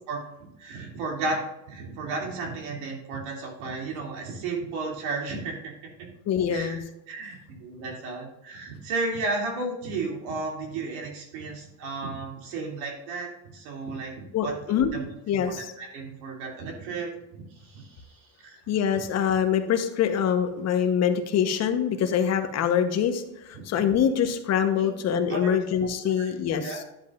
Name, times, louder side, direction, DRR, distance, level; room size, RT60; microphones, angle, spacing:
voice 1, 0.1-5.7 6.0-6.1 6.5-6.8 7.1-14.6 14.9-15.1 15.4-18.6 23.5-23.6 24.8-24.9 25.3-25.5 26.0-26.3 26.6-26.8, right 3 dB, 75° right, 0 dB, 2.8 m, -34 dB
voice 2, 6.3-6.8 14.3-14.9 15.3-15.7 18.7-26.8, left 8 dB, 40° left, 6 dB, 1.1 m, -24 dB
11.0 x 7.8 x 2.5 m, 0.89 s
cardioid pair, 135°, 39 cm